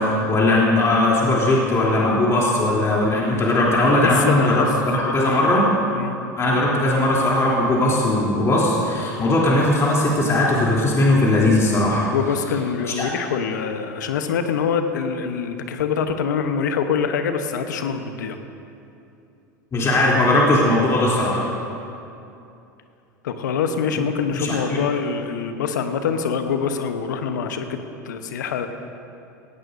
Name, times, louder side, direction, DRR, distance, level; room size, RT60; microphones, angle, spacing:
voice 1, 0.0-5.7 6.4-12.0 12.9-13.1 19.7-21.4 24.3-24.8, left 1 dB, 30° left, -5 dB, 3.3 m, -19 dB
voice 2, 3.9-4.7 5.0-5.5 5.9-6.1 12.0-18.4 23.2-27.8 28.0-28.7, left 6 dB, 75° left, 7 dB, 1.0 m, -25 dB
18.0 x 16.5 x 2.7 m, 2.7 s
hypercardioid pair, 85°, 10 cm